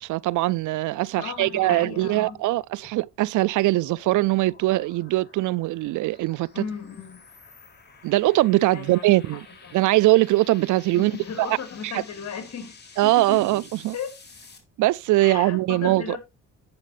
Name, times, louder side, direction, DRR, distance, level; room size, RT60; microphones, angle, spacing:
voice 1, 0.0-6.6 8.0-9.4 9.7-11.1 11.5-11.6 11.8-11.9 13.0-13.9 14.8-16.2, right 18 dB, 80° right, 0.5 m, -21 dB
voice 2, 1.2-2.4 6.5-7.2 8.7-9.8 10.9-13.6 13.9-14.2 15.2-16.2, left 7 dB, 60° left, 3.6 m, -36 dB
sound 1, 2.7-14.6, left 4 dB, 35° left, 3.9 m, -51 dB
11.5 x 8.3 x 3.2 m
cardioid pair, 90°, 30 cm